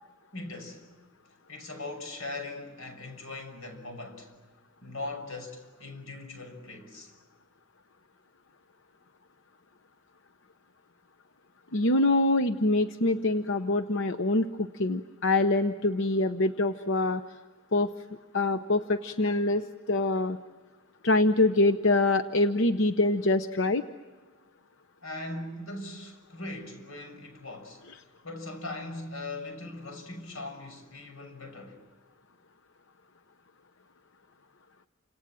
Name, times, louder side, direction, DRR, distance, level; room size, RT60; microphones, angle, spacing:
voice 1, 0.3-0.9 1.5-4.3 4.8-7.1 25.0-31.8, left 2 dB, 90° left, 6.2 m, -40 dB
voice 2, 11.7-17.2 17.7-17.9 18.3-20.4 21.0-23.8, left 2 dB, 65° left, 0.8 m, -25 dB
29.5 x 26.5 x 7.6 m
head